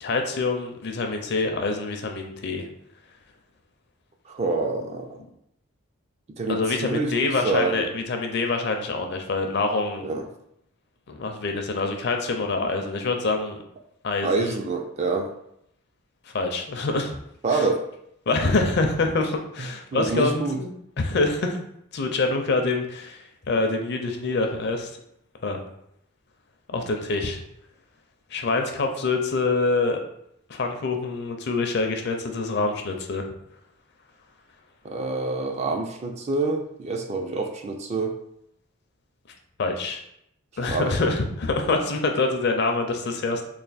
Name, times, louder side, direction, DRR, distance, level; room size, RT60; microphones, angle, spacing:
voice 1, 0.0-2.7 6.5-10.1 11.1-13.6 14.0-14.6 16.3-17.1 17.5-17.6 18.3-21.6 21.9-24.9 25.4-25.6 26.7-27.4 28.3-30.0 30.5-33.3 39.6-40.0 40.6-43.4, left 3 dB, 50° left, 4 dB, 0.5 m, -25 dB
voice 2, 4.3-5.2 6.4-7.9 10.0-10.2 14.2-15.3 17.4-17.9 19.9-20.6 34.8-38.2 40.7-41.0, right 3 dB, 30° right, 4 dB, 0.3 m, -26 dB
3.3 x 2.5 x 4.0 m, 0.76 s
head